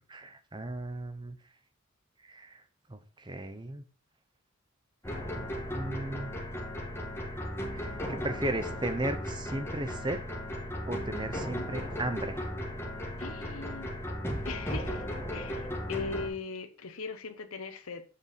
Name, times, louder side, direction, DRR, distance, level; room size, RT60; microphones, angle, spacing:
voice 1, 0.1-1.4 2.2-2.6 2.9-3.8 5.3-5.5 5.7-6.4 7.7-10.2 10.9-12.5, right 1 dB, 20° right, 0.8 m, -36 dB
sound 1, 5.0-16.3, equal, 10° left, 2.1 m, -36 dB
voice 2, 11.3-11.7 13.2-13.9 14.4-18.0, left 4 dB, 90° left, 0.9 m, -40 dB
8.2 x 5.2 x 5.0 m
head